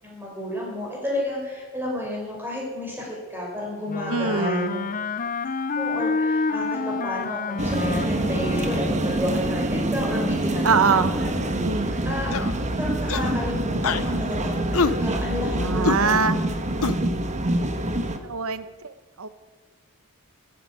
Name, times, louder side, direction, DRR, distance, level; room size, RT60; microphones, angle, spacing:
voice 1, 0.0-4.8 5.7-11.3 11.8-12.4 12.8-16.2, left 1 dB, 10° right, -3 dB, 5.9 m, -31 dB
Wind instrument woodwind instrument, 3.9-9.2, left 4 dB, 40° left, 0.6 m, -28 dB
voice 2, 4.1-4.9 10.6-11.2 11.6-12.0 15.5-16.4 18.2-19.3, right 5 dB, 65° right, 13 dB, 1.0 m, -24 dB
sound 1, 7.6-18.2, right 1 dB, 30° right, 1.3 m, -26 dB
sound 2, 12.3-12.6 13.1-13.4 13.8-14.1 14.7-15.0 15.8-16.0 16.8-17.0, left 5 dB, 65° left, 0.8 m, -24 dB
14.0 x 10.0 x 9.5 m, 1.3 s
head